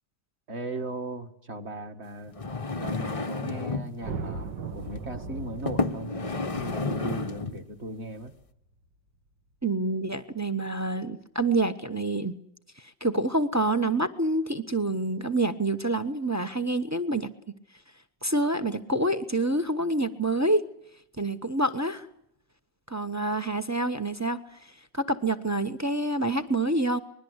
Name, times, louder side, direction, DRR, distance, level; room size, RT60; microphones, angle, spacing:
voice 1, 0.5-2.3 2.8-8.3, right 1 dB, 35° right, 4 dB, 1.9 m, -37 dB
sound 1, 2.3-4.0 4.8-5.0 5.7-7.6 8.3-8.4, left 3 dB, 30° left, 0.6 m, -31 dB
sound 2, 4.0-8.4, right 4 dB, 70° right, 2.2 m, -38 dB
voice 2, 9.6-12.3 13.0-17.3 18.2-20.6 21.2-22.1 22.9-24.4 24.9-27.0, right 2 dB, 15° right, 10 dB, 0.6 m, -27 dB
25.5 x 21.0 x 8.1 m, 0.73 s
omnidirectional pair, 2.0 m